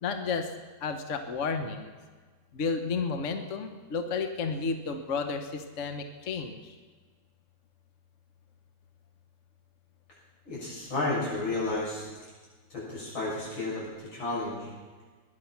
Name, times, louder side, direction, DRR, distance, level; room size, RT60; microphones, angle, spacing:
voice 1, 0.0-0.5 0.8-1.9 2.5-6.7, left 4 dB, 45° left, 7 dB, 1.2 m, -32 dB
voice 2, 10.5-12.1 12.7-14.7, left 2 dB, 90° left, -7 dB, 7.7 m, -32 dB
19.5 x 11.0 x 5.9 m, 1.4 s
omnidirectional pair, 2.1 m